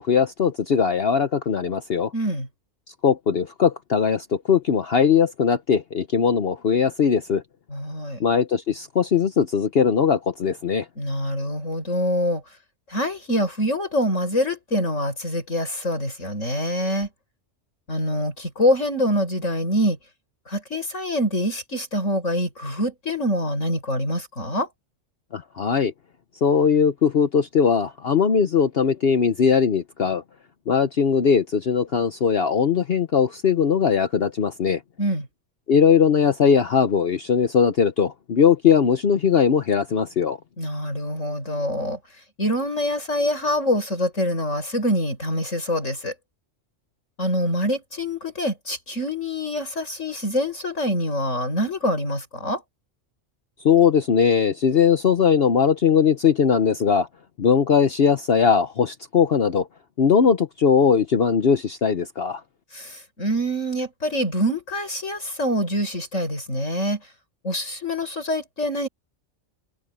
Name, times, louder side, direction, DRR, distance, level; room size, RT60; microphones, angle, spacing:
voice 1, 0.0-2.1 3.0-7.4 8.2-10.9 25.3-25.9 26.4-30.2 30.7-34.8 35.7-40.4 53.6-57.1 57.4-59.7 60.0-62.4, left 6 dB, 55° left, 1.0 m, -20 dB
voice 2, 2.1-2.5 7.7-8.2 11.0-12.4 12.9-17.1 17.9-20.0 20.5-24.7 35.0-35.3 40.6-42.0 42.4-46.1 47.2-52.6 62.7-67.0 67.4-68.9, equal, 80° left, 6.9 m, -25 dB
omnidirectional pair, 1.3 m